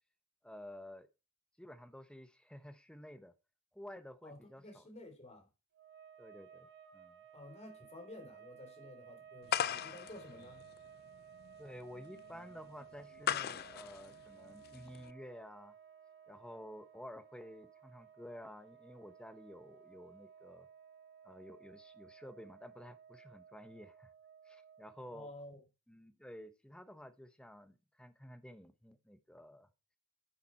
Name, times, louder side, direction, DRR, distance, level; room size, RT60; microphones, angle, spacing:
voice 1, 0.4-1.1 1.6-3.3 3.7-4.9 6.2-7.2 8.1-8.2 11.6-15.7 16.3-20.7 21.2-24.1 24.4-25.3 25.9-29.7, equal, 5° left, 0.9 m, -52 dB
voice 2, 4.2-5.5 7.3-10.7 25.1-25.6, left 1 dB, 30° left, 3.3 m, -52 dB
sound 1, 5.7-25.4, right 8 dB, 55° right, 1.9 m, -58 dB
sound 2, 9.5-15.1, left 9 dB, 45° left, 0.4 m, -39 dB
10.0 x 7.0 x 4.4 m
head